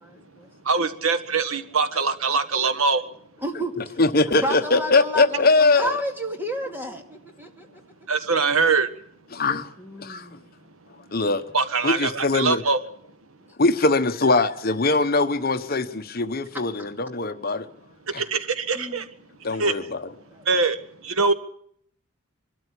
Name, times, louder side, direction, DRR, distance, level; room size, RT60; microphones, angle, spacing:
voice 1, 0.0-0.5 3.4-3.9 4.3-7.7 9.8-10.4 18.1-18.3 18.7-19.0 20.3-20.5, right 1 dB, 10° right, 2.4 m, -31 dB
voice 2, 0.7-3.0 8.1-8.9 11.5-12.8 18.2-19.0 19.6-19.7 20.5-20.8 21.0-21.3, right 4 dB, 90° right, 1.5 m, -22 dB
voice 3, 3.8-6.0 9.3-9.7 10.0-10.3 11.1-11.4 11.8-12.6 13.6-17.7 18.1-18.2 19.4-20.0, left 3 dB, 45° left, 1.1 m, -21 dB
23.5 x 13.0 x 9.9 m
head